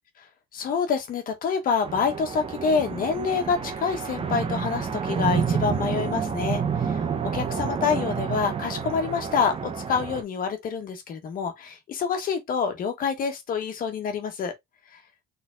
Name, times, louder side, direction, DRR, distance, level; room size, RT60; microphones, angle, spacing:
voice 1, 0.5-14.5 14.9-15.0, left 6 dB, 55° left, 1.4 m, -27 dB
sound 1, 1.8-10.2, right 6 dB, 35° right, 0.9 m, -29 dB
4.2 x 3.9 x 2.6 m
cardioid pair, 110°, 17 cm